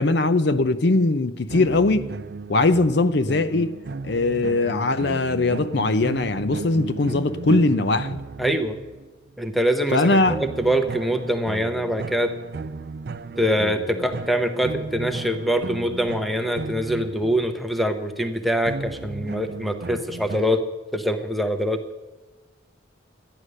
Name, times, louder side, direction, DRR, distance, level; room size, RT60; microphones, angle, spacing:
voice 1, 0.0-2.1 2.5-3.7 4.0-8.2 9.9-10.4, left 2 dB, 60° left, 0.6 m, -20 dB
sound 1, 1.5-9.1 10.3-17.8 18.6-20.5, right 4 dB, 50° right, 0.4 m, -35 dB
voice 2, 8.4-8.8 9.4-12.3 13.4-20.6 20.9-21.8, equal, ahead, 0.8 m, -24 dB
12.5 x 9.8 x 6.4 m
head